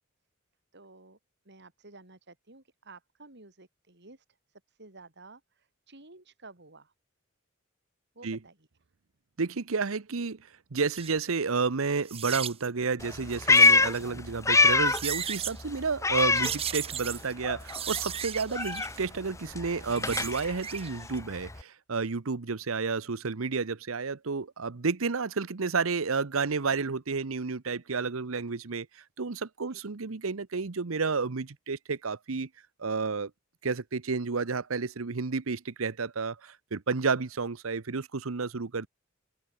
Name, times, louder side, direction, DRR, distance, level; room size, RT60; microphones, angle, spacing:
voice 1, 0.7-1.2 1.4-6.9 8.1-8.7 29.7-29.8, right 3 dB, 60° right, 4.3 m, -53 dB
voice 2, 9.4-10.4 10.7-28.9 29.2-32.5 32.8-33.3 33.6-38.9, right 4 dB, 85° right, 0.9 m, -31 dB
sound 1, 10.9-11.1 12.1-12.7 13.3-14.0 14.7-15.6 16.3-17.3 17.7-19.0 19.7-20.9 21.2-21.3, right 9 dB, 30° right, 0.6 m, -35 dB
Meow, 13.0-15.2 15.5-17.2 17.4-21.6, left 3 dB, 15° left, 0.8 m, -25 dB
open air
head